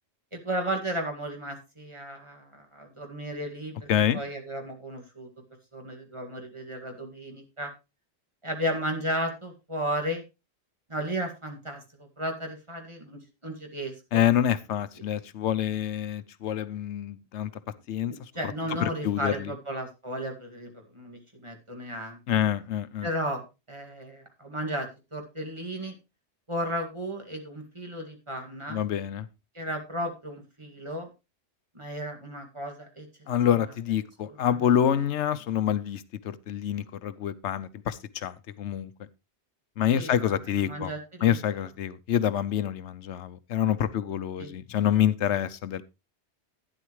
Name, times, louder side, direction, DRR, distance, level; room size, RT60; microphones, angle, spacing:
voice 1, 0.3-5.3 5.7-7.7 8.4-10.2 10.9-14.2 18.3-22.4 23.0-25.9 26.5-28.8 29.5-31.1 31.7-33.1 34.3-34.7 39.9-41.4 44.4-44.5, equal, 25° right, 2.2 m, -34 dB
voice 2, 3.9-4.2 14.1-17.5 17.9-18.1 18.8-19.5 22.3-23.1 28.7-29.3 33.3-38.9 39.8-40.9 41.2-45.8, left 10 dB, 85° left, 1.0 m, -27 dB
11.5 x 10.0 x 3.1 m
omnidirectional pair, 1.2 m